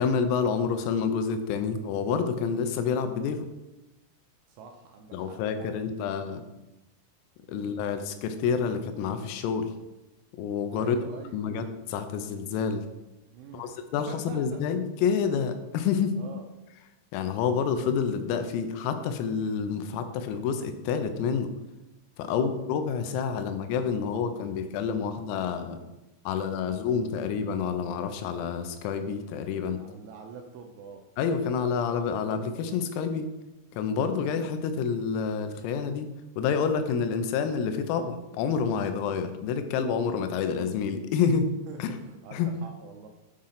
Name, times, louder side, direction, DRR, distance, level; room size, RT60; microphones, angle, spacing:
voice 1, 0.0-3.5 5.1-6.4 7.5-9.7 10.4-11.0 11.3-12.9 13.5-16.2 17.1-21.5 22.2-25.8 26.3-29.8 31.2-33.3 33.7-36.1 36.4-41.5 41.8-42.0 42.3-42.5, left 6 dB, 85° left, 8 dB, 3.4 m, -28 dB
voice 2, 4.5-5.9 7.5-7.7 10.7-11.5 13.3-13.8 14.1-14.6 16.2-16.5 22.2-22.5 29.8-31.0 41.7-43.1, right 5 dB, 80° right, 3 dB, 2.7 m, -45 dB
8.8 x 3.8 x 5.7 m, 1.0 s
omnidirectional pair, 5.9 m